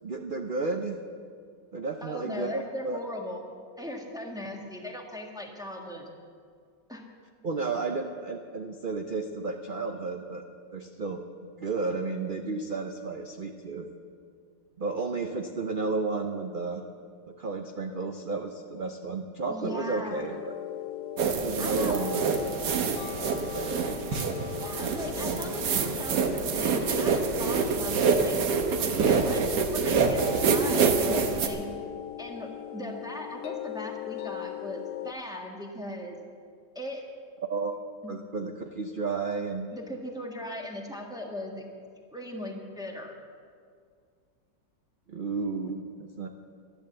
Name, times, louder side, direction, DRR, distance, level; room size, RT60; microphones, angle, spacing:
voice 1, 0.0-1.0 1.7-3.0 7.4-10.4 10.7-11.2 11.6-13.9 14.8-16.8 17.3-20.5 21.4-22.3 23.5-23.9 37.5-39.7 45.1-46.3, right 3 dB, 60° right, 4 dB, 0.5 m, -32 dB
voice 2, 2.0-3.4 3.8-6.1 6.9-7.0 19.5-20.3 21.6-22.0 24.5-28.4 28.8-29.5 29.7-31.7 32.2-36.2 36.7-37.0 38.0-38.1 39.7-41.7 42.1-43.1, left 1 dB, ahead, 0 dB, 1.3 m, -38 dB
sound 1, 20.1-35.1, left 12 dB, 75° left, 1.1 m, -39 dB
sound 2, 21.2-31.5, right 5 dB, 75° right, 1.7 m, -26 dB
11.5 x 11.0 x 7.9 m, 2.2 s
omnidirectional pair, 1.9 m